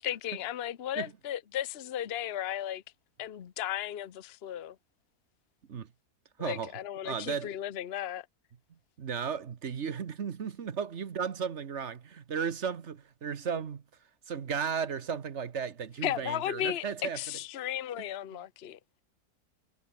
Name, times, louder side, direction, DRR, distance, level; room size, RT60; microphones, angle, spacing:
voice 1, 0.0-2.8 3.2-4.7 6.4-8.2 16.0-16.8 17.1-18.8, left 11 dB, 45° left, 1.0 m, -35 dB
voice 2, 6.4-6.8 7.0-7.5 9.0-13.8 14.3-17.2, right 6 dB, 50° right, 1.3 m, -35 dB
omnidirectional pair, 1.7 m